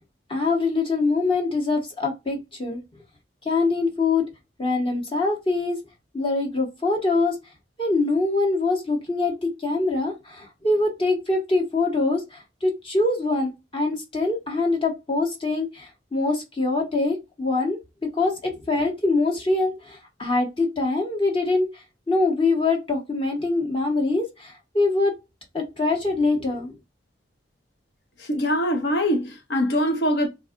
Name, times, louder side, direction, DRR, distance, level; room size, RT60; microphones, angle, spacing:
voice 1, 0.3-2.8 3.4-4.2 4.6-5.8 6.1-7.4 7.8-21.7 22.1-25.1 25.5-26.7, left 3 dB, 30° left, 0.9 m, -24 dB
voice 2, 28.2-30.3, equal, 65° left, 0.8 m, -23 dB
4.0 x 2.5 x 2.4 m
head